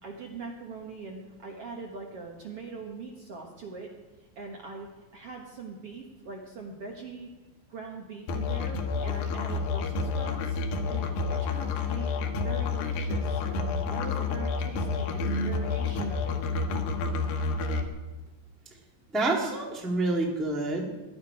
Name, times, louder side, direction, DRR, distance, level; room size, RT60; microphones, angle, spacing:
voice 1, 0.0-3.9 4.4-7.3 7.7-10.6 10.9-12.2 12.4-16.4, right 4 dB, 55° right, 0 dB, 1.8 m, -42 dB
Musical instrument, 8.3-17.9, left 4 dB, 90° left, 2.9 m, -29 dB
voice 2, 19.1-20.9, right 2 dB, ahead, -1 dB, 1.2 m, -27 dB
17.5 x 11.5 x 4.9 m, 1.2 s
omnidirectional pair, 4.0 m